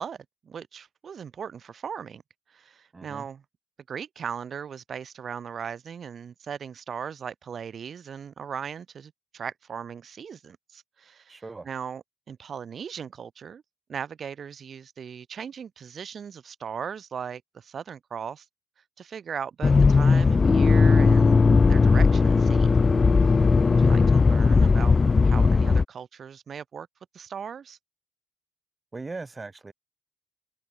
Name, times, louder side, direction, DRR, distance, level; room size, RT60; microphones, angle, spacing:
voice 1, 0.0-2.2 2.5-3.4 3.9-13.6 13.9-18.4 19.0-21.3 21.7-22.7 23.7-26.9 27.1-27.8, right 7 dB, 50° right, 5.1 m, -38 dB
voice 2, 2.9-3.3 11.3-11.7 23.6-24.1 28.9-29.7, right 3 dB, 25° right, 5.1 m, -40 dB
Accelerating revving vroom, 19.6-25.8, left 4 dB, 30° left, 1.2 m, -18 dB
cardioid pair, 90°, 0 cm